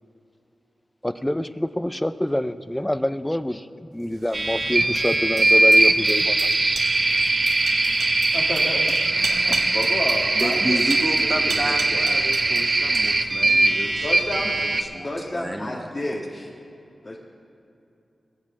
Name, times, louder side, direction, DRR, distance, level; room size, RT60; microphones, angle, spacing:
voice 1, 1.0-3.7 3.9-6.5, left 1 dB, 10° left, 12 dB, 0.5 m, -26 dB
sound 1, 4.1-12.7 12.9-13.4, right 4 dB, 90° right, 1.3 m, -36 dB
sound 2, 4.3-14.8, right 2 dB, 50° right, 0.9 m, -21 dB
voice 2, 8.3-10.8 11.2-12.2 14.0-14.6 15.0-16.5 17.0-17.2, left 1 dB, 35° left, -3 dB, 1.7 m, -31 dB
voice 3, 10.4-14.0 14.7-15.1 15.3-15.9, right 1 dB, 10° right, 4 dB, 1.1 m, -30 dB
21.0 x 7.4 x 7.2 m, 2.7 s
wide cardioid pair, 75°, 0 cm